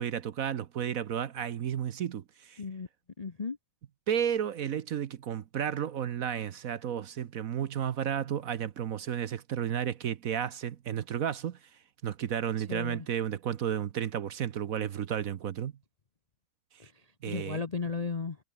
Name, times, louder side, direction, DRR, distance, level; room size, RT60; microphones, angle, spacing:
voice 1, 0.0-2.6 4.1-15.7 16.7-16.9 17.2-17.6, right 9 dB, 60° right, 1.1 m, -33 dB
voice 2, 2.6-2.9 3.2-3.6 12.7-13.1 16.8-16.9 17.2-18.4, left 4 dB, 35° left, 0.6 m, -35 dB
omnidirectional pair, 1.9 m